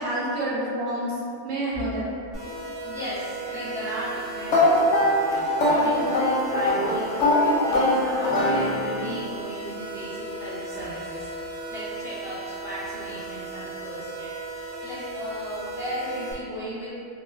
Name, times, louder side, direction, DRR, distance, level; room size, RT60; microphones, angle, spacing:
voice 1, 0.0-2.1, right 1 dB, 75° right, -5 dB, 0.9 m, -28 dB
sound 1, 2.3-16.3, right 3 dB, 40° right, 1.0 m, -36 dB
voice 2, 2.8-16.9, equal, 5° right, -12 dB, 0.5 m, -36 dB
sound 2, 4.5-9.1, left 1 dB, 90° left, 0.9 m, -22 dB
2.9 x 2.3 x 2.3 m, 2.5 s
omnidirectional pair, 1.2 m